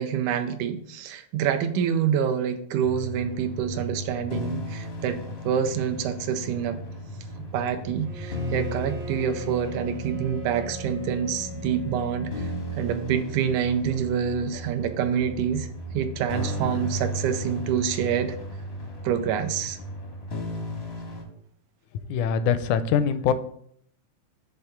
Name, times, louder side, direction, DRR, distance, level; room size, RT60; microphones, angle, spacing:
voice 1, 0.0-5.2 5.5-6.8 7.5-12.5 12.8-15.7 15.9-18.4 19.0-19.8, right 8 dB, 90° right, 7 dB, 2.1 m, -27 dB
sound 1, 2.8-21.2, equal, 60° left, 0.6 m, -35 dB
Bowed string instrument, 8.0-13.4, equal, 75° right, 2.7 m, -41 dB
voice 2, 22.1-23.3, left 7 dB, 85° left, 12 dB, 2.0 m, -23 dB
6.6 x 3.5 x 5.7 m, 0.66 s
omnidirectional pair, 3.4 m